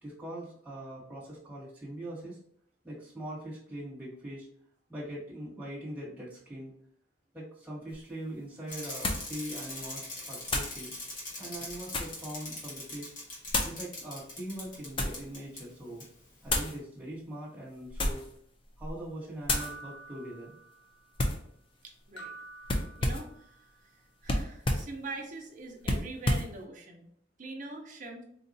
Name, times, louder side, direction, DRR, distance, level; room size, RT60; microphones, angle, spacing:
voice 1, 0.0-2.4 2.8-4.5 4.9-6.7 7.3-10.9 11.4-13.1 13.6-16.0 16.4-18.2 18.8-20.6, right 1 dB, 10° right, -7 dB, 1.2 m, -42 dB
sound 1, 7.9-8.0 9.0-9.3 10.5-10.8 11.5-12.3 13.5-13.8 14.6-15.2 16.5-16.8 17.9-18.3 18.8-19.0 19.4-19.7 21.2-21.5 22.7-23.3 24.2-24.9 25.8-26.5, left 1 dB, 25° left, 0.4 m, -30 dB
Bicycle, 8.7-15.6 16.0-16.1, left 2 dB, 45° left, 1.0 m, -42 dB
sound 2, 19.5-21.0 22.2-23.6, right 3 dB, 65° left, 0.7 m, -47 dB
voice 2, 21.8-22.3 23.0-23.7 24.2-27.1 27.4-28.2, right 2 dB, 40° right, 2 dB, 0.6 m, -43 dB
3.9 x 2.3 x 2.6 m, 0.65 s
head